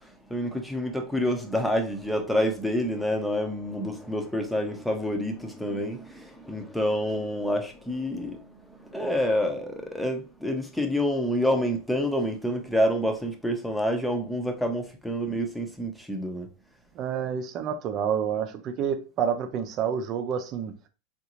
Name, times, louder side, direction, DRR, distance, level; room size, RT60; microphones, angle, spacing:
voice 1, 0.0-16.5, equal, ahead, 0.8 m, -28 dB
voice 2, 16.9-20.7, right 8 dB, 45° right, 0.6 m, -28 dB
3.7 x 2.6 x 2.9 m
hypercardioid pair, 110°, 0 cm